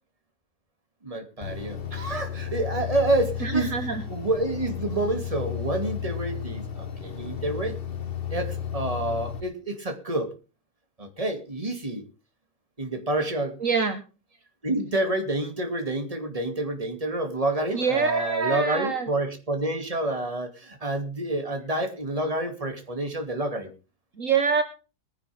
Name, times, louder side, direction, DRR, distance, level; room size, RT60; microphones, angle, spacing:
voice 1, 1.0-3.7 4.1-7.8 8.3-10.3 11.0-12.0 12.8-13.5 14.6-23.7, right 2 dB, 20° right, 6 dB, 2.5 m, -28 dB
sound 1, 1.4-9.4, left 9 dB, 40° left, 1.3 m, -33 dB
voice 2, 3.4-4.0 13.6-14.0 17.7-19.1 24.2-24.6, right 5 dB, 55° right, 8 dB, 1.6 m, -25 dB
22.0 x 10.5 x 3.5 m, 0.34 s
omnidirectional pair, 1.7 m